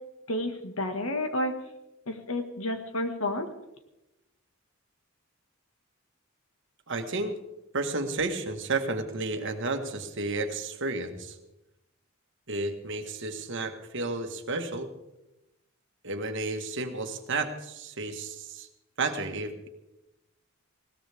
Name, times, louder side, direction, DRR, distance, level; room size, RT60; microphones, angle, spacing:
voice 1, 0.3-1.5 2.1-3.5, left 1 dB, 80° left, 6 dB, 1.8 m, -30 dB
voice 2, 6.9-7.3 7.7-11.4 12.5-14.9 16.0-18.7 19.0-19.7, right 3 dB, 60° right, 6 dB, 1.6 m, -32 dB
20.5 x 17.5 x 3.6 m, 0.93 s
head